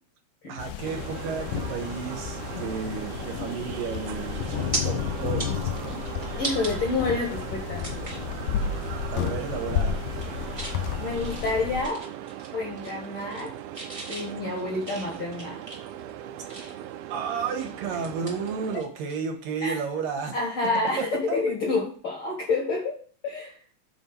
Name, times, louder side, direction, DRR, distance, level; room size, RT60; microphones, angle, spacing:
voice 1, 0.5-6.0 9.1-10.0 17.1-20.4 21.0-21.4, right 6 dB, 75° right, 3 dB, 2.9 m, -32 dB
sound 1, 0.6-11.8, left 8 dB, 80° left, 2.1 m, -32 dB
sound 2, 0.8-18.8, right 11 dB, 90° right, 2.5 m, -39 dB
sound 3, 4.3-4.8 5.2-6.7 7.2-7.3 7.8-8.3 8.7-8.9 9.2-9.6 10.0-10.8 11.2-12.5 12.8-13.5 13.7-16.9 17.3-19.2 19.4-19.6 21.5-21.7, right 2 dB, 25° right, 0.7 m, -38 dB
voice 2, 6.4-7.9 11.0-12.1 12.5-13.5 14.1-15.6 19.6-19.8 20.3-23.0 23.2-23.6, left 3 dB, 55° left, 0 dB, 1.7 m, -28 dB
7.5 x 4.4 x 6.8 m, 0.43 s
omnidirectional pair, 4.1 m